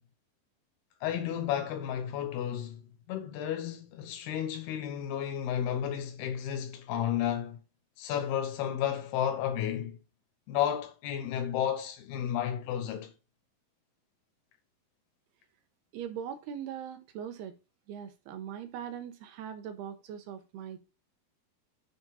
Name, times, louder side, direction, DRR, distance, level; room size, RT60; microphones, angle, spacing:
voice 1, 1.0-7.6 8.0-10.0 10.5-13.1, left 10 dB, 90° left, 3.1 m, -32 dB
voice 2, 15.9-17.5 17.9-20.8, right 9 dB, 80° right, 3.1 m, -40 dB
7.4 x 4.8 x 5.6 m
omnidirectional pair, 4.5 m